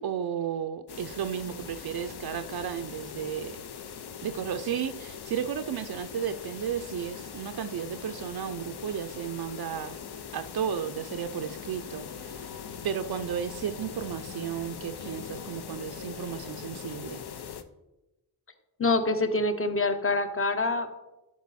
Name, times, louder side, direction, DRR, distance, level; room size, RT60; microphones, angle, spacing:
voice 1, 0.0-3.6 4.2-10.0 10.3-12.5 12.8-17.2, right 8 dB, 65° right, 9 dB, 0.5 m, -33 dB
sound 1, 0.9-17.6, left 7 dB, 70° left, 0.7 m, -41 dB
voice 2, 18.8-20.9, left 2 dB, 35° left, 8 dB, 0.9 m, -26 dB
11.0 x 4.6 x 4.2 m, 1.0 s
cardioid pair, 65°, 40 cm